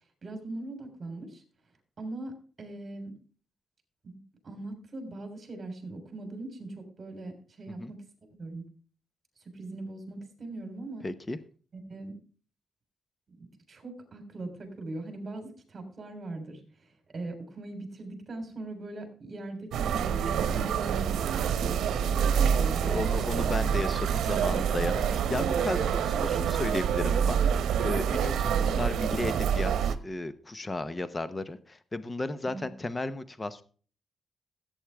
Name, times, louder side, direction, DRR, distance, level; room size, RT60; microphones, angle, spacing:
voice 1, 0.2-1.4 2.0-3.1 4.0-8.6 9.4-11.1 11.7-12.2 13.3-23.2 32.4-32.7, right 2 dB, 30° right, 5 dB, 3.5 m, -40 dB
voice 2, 11.0-11.4 22.9-33.6, left 2 dB, 15° left, 13 dB, 0.8 m, -34 dB
sound 1, 19.7-30.0, right 8 dB, 80° right, 0.9 m, -27 dB
16.0 x 8.8 x 3.4 m, 0.41 s
cardioid pair, 155°, 0 cm